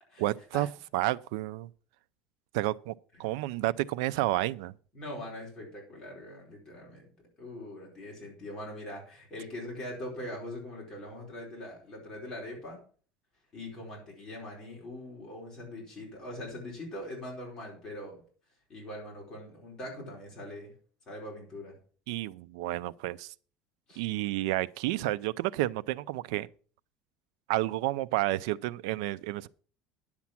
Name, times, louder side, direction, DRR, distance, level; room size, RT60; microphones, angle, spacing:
voice 1, 0.2-0.7 0.9-1.7 2.5-2.9 3.2-4.7 22.1-23.3 24.0-26.5 27.5-29.5, right 16 dB, 90° right, 0.5 m, -30 dB
voice 2, 4.9-7.0 7.4-12.8 13.5-18.1 18.7-20.7 21.1-21.7 23.9-24.0, left 1 dB, 25° left, 4.6 m, -42 dB
10.5 x 7.2 x 5.9 m
cardioid pair, 160°, 3 cm